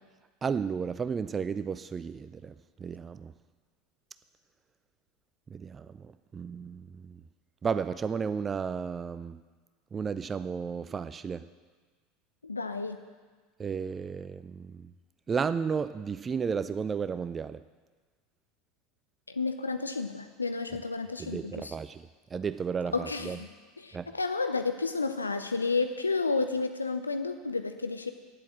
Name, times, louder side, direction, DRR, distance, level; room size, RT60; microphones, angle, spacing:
voice 1, 0.4-3.3 5.5-7.2 7.6-9.4 9.9-11.5 13.6-14.9 15.3-17.6 21.2-23.4 23.9-24.2, right 6 dB, 25° right, 14 dB, 0.3 m, -33 dB
voice 2, 12.4-13.0 19.3-21.7 22.9-23.5 23.8-28.1, left 4 dB, 85° left, 8 dB, 0.5 m, -31 dB
9.5 x 8.2 x 7.5 m, 1.4 s
figure-of-eight pair, 75°, 0 cm